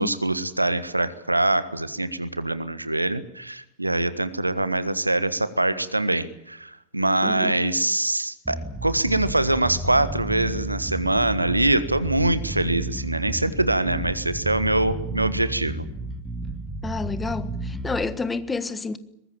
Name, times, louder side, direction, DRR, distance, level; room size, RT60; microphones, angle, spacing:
voice 1, 0.0-15.8, right 2 dB, 85° right, 1.4 m, -24 dB
voice 2, 7.2-7.6 16.8-19.0, left 4 dB, 10° left, 1.5 m, -29 dB
Bass guitar, 8.4-18.0, right 2 dB, 5° right, 2.8 m, -32 dB
23.0 x 20.5 x 8.8 m
figure-of-eight pair, 90°, 0 cm